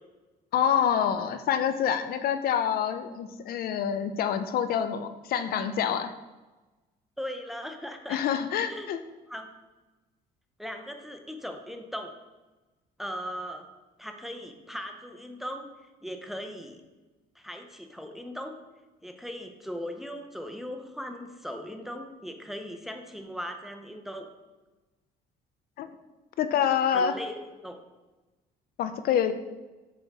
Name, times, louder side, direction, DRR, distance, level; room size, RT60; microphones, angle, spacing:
voice 1, 0.5-6.1 8.1-9.0 25.8-25.9 26.4-27.1 28.8-29.3, left 8 dB, 65° left, 10 dB, 0.4 m, -26 dB
voice 2, 7.2-8.2 8.7-8.9 9.3-9.5 10.6-12.1 13.0-13.7 14.0-15.7 16.0-16.8 17.4-18.5 19.0-24.3 26.9-27.8, equal, ahead, 5 dB, 0.6 m, -38 dB
7.1 x 3.5 x 4.1 m, 1.1 s
cardioid pair, 110°, 17 cm